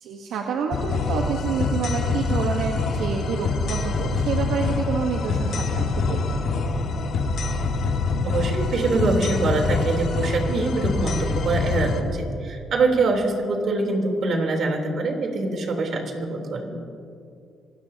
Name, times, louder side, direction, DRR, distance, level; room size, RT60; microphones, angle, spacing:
voice 1, 0.0-6.4, right 6 dB, 85° right, 2 dB, 1.2 m, -28 dB
sound 1, 0.7-12.0, left 3 dB, 65° left, 1.7 m, -25 dB
voice 2, 8.2-16.8, right 3 dB, 60° right, 1 dB, 3.6 m, -24 dB
26.5 x 18.0 x 2.9 m, 2.4 s
cardioid pair, 90°, 0 cm